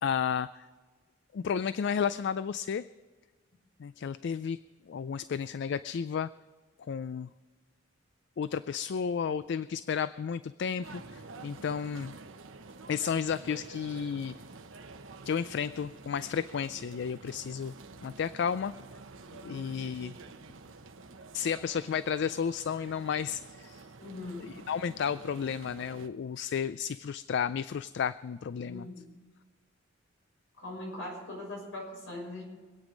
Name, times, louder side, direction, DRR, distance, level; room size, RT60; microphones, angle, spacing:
voice 1, 0.0-0.7 1.3-2.8 3.8-4.6 4.9-6.3 6.9-7.3 8.4-12.1 12.9-14.3 15.2-17.7 18.0-18.7 19.4-20.2 21.3-23.8 24.4-28.9, left 7 dB, 60° left, 15 dB, 0.3 m, -32 dB
sound 1, 10.8-26.1, right 3 dB, 85° right, 1.0 m, -49 dB
voice 2, 19.4-19.9 24.0-24.5 28.7-29.0 30.6-32.4, left 1 dB, 80° left, -1 dB, 6.5 m, -41 dB
24.5 x 9.1 x 5.2 m, 1.4 s
head